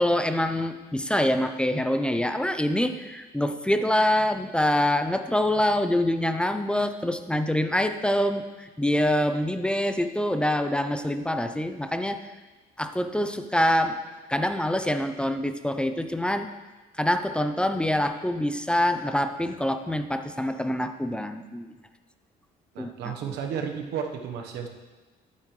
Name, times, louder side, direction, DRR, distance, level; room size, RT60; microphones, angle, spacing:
voice 1, 0.0-12.2 12.8-14.0 14.3-16.5 17.0-21.8 22.8-23.4, left 1 dB, 5° left, 9 dB, 0.5 m, -25 dB
voice 2, 22.7-24.7, right 7 dB, 80° right, 4 dB, 1.2 m, -32 dB
12.5 x 8.5 x 3.2 m, 1.3 s
cardioid pair, 110°, 17 cm